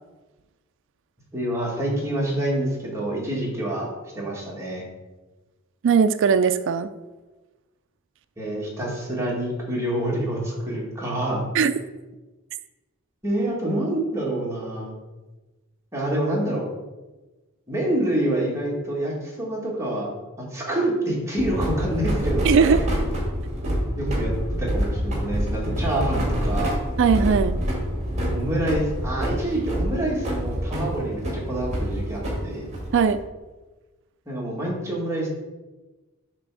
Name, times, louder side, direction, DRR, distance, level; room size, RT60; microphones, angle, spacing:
voice 1, 1.3-4.9 8.4-11.5 13.2-14.9 15.9-16.7 17.7-20.1 20.4-22.5 24.0-24.3 24.6-26.8 28.3-32.7 34.3-35.3, right 1 dB, 15° right, -4 dB, 1.8 m, -27 dB
voice 2, 5.8-6.9 11.5-11.8 22.4-22.9 27.0-27.6 32.9-33.2, right 6 dB, 60° right, 10 dB, 0.3 m, -19 dB
sound 1, 21.4-33.2, equal, 30° right, 1.8 m, -27 dB
7.5 x 3.5 x 6.1 m, 1.2 s
head